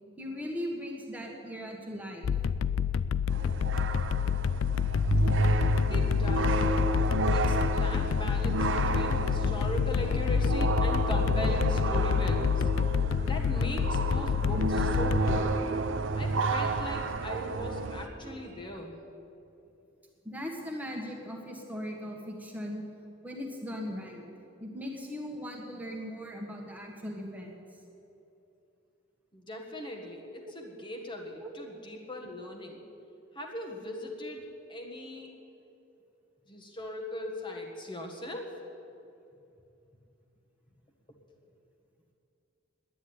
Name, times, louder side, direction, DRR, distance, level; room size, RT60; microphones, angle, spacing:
voice 1, 0.2-2.3 20.2-22.8 23.2-24.2 24.6-27.6 31.4-31.5, equal, 10° right, 0 dB, 1.5 m, -38 dB
sound 1, 2.2-15.4, left 7 dB, 85° left, 0.4 m, -28 dB
sound 2, 3.3-18.1, right 3 dB, 70° right, 0.7 m, -31 dB
sound 3, 4.9-18.7, right 1 dB, 40° right, 1.3 m, -53 dB
voice 2, 5.9-6.6 7.3-12.6 13.2-15.6 16.2-19.0 29.3-32.8 33.3-35.3 36.5-38.5, left 1 dB, 25° left, 1 dB, 1.5 m, -39 dB
10.5 x 9.8 x 9.6 m, 2.8 s
head